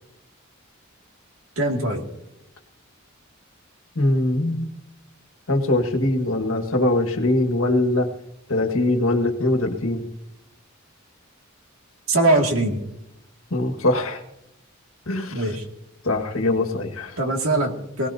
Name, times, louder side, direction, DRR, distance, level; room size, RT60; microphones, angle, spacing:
voice 1, 1.6-2.1 12.1-12.8 15.3-15.6 17.2-18.1, right 2 dB, 85° right, 3 dB, 2.3 m, -21 dB
voice 2, 4.0-4.8 5.5-8.1 8.5-10.1 13.5-14.2 15.1-15.6 16.0-17.2, left 2 dB, 85° left, 4 dB, 1.7 m, -22 dB
22.5 x 18.0 x 2.8 m, 0.85 s
head